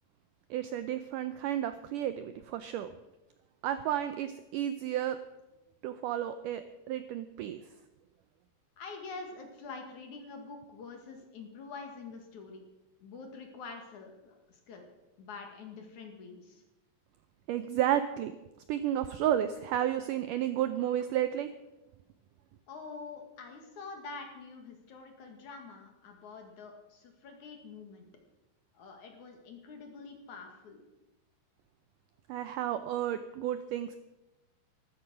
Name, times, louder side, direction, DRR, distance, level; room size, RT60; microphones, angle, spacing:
voice 1, 0.5-2.9 3.6-5.2 5.8-7.6 17.5-18.3 18.7-21.5 32.3-34.0, right 11 dB, 85° right, 11 dB, 1.8 m, -32 dB
voice 2, 8.8-12.6 13.0-14.9 15.2-16.6 22.7-28.1 28.7-30.9, left 4 dB, 55° left, 3 dB, 3.0 m, -46 dB
14.0 x 13.0 x 6.3 m, 1.0 s
omnidirectional pair, 4.5 m